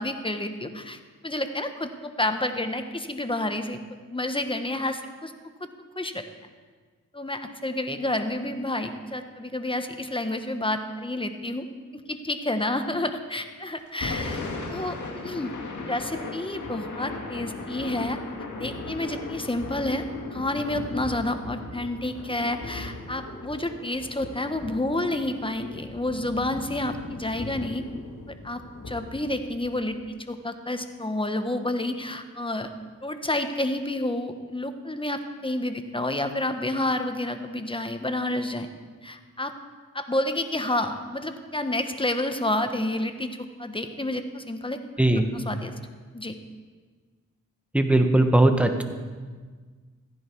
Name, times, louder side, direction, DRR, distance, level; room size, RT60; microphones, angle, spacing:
voice 1, 0.0-3.8 4.1-5.3 6.0-6.2 7.1-11.6 11.9-14.4 14.7-15.0 15.2-15.5 15.9-18.2 18.6-20.1 20.3-27.9 28.3-32.7 33.0-38.7 39.0-39.5 39.9-43.3 43.6-44.8 45.3-45.7 46.1-46.4, left 1 dB, 15° left, 7 dB, 1.2 m, -29 dB
Thunder / Rain, 13.9-30.1, left 3 dB, 70° left, 2.2 m, -37 dB
voice 2, 47.7-48.8, right 1 dB, 5° right, 6 dB, 1.3 m, -19 dB
15.0 x 10.5 x 4.6 m, 1.5 s
cardioid pair, 50°, 31 cm